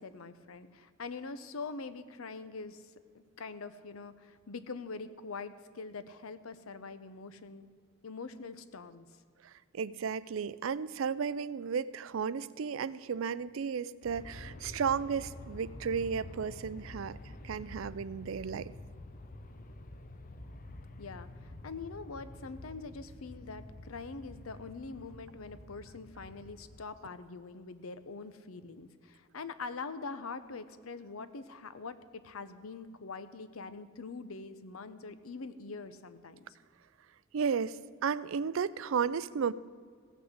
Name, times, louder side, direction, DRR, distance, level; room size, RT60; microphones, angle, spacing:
voice 1, 0.0-2.8 3.1-7.7 8.0-9.1 21.0-36.6, left 4 dB, 85° left, 13 dB, 0.7 m, -44 dB
voice 2, 9.4-17.2 17.4-18.7 37.3-39.5, right 6 dB, 65° right, 18 dB, 0.4 m, -34 dB
Aircraft, 14.0-26.8, left 2 dB, 40° left, 0.7 m, -48 dB
16.0 x 6.0 x 7.9 m, 2.1 s
head